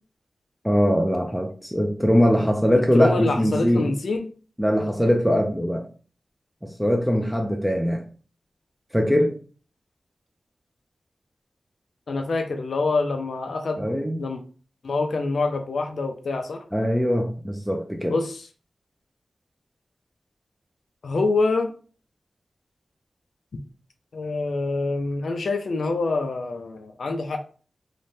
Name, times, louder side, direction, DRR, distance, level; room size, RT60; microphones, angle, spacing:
voice 1, 0.6-3.9 4.6-5.9 6.6-8.0 8.9-9.4 13.8-14.2 16.7-18.1, equal, ahead, 2 dB, 0.4 m, -21 dB
voice 2, 2.9-4.3 12.1-13.8 14.2-14.4 14.8-16.6 18.1-18.5 21.0-21.7 24.1-27.4, left 3 dB, 80° left, 4 dB, 0.3 m, -25 dB
2.6 x 2.1 x 3.1 m, 0.40 s
wide cardioid pair, 75°, 0 cm